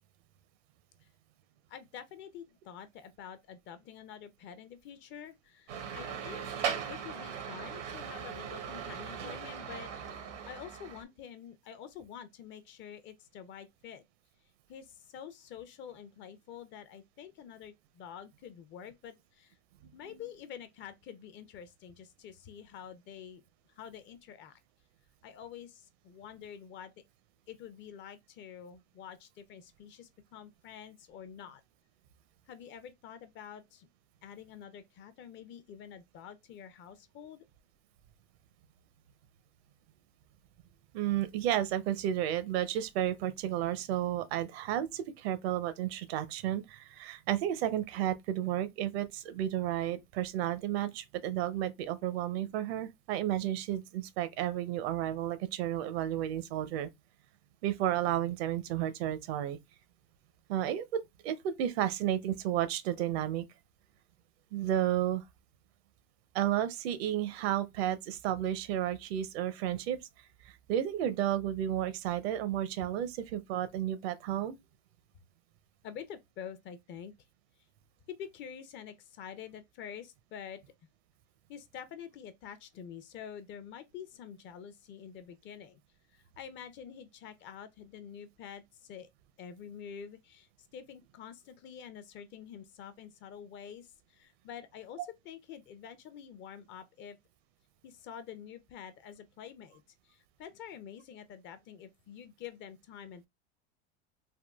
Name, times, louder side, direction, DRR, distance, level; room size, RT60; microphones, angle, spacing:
voice 1, 1.7-14.0 14.7-19.5 19.9-23.4 23.7-24.6 25.2-26.9 27.5-31.6 32.5-33.9 34.2-37.4 75.8-77.1 78.1-80.6 81.5-85.8 86.1-89.1 89.4-97.2 97.8-103.3, left 8 dB, 35° left, 0.5 m, -47 dB
sound 1, 5.7-11.0, right 7 dB, 90° right, 1.0 m, -39 dB
voice 2, 40.9-56.9 57.6-59.6 60.5-63.4 64.5-65.2 66.3-70.0 70.5-74.6, right 11 dB, 65° right, 0.6 m, -32 dB
3.6 x 2.3 x 2.3 m
supercardioid pair, 115°, 34 cm